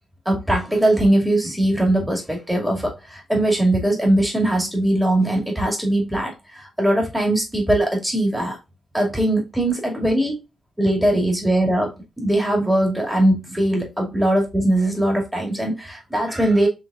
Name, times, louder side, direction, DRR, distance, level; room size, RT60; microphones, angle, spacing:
voice 1, 0.3-8.6 8.9-10.4 10.8-16.7, right 1 dB, 5° right, 2.3 m, -20 dB
5.2 x 3.8 x 2.5 m
cardioid pair, 60°, 0 cm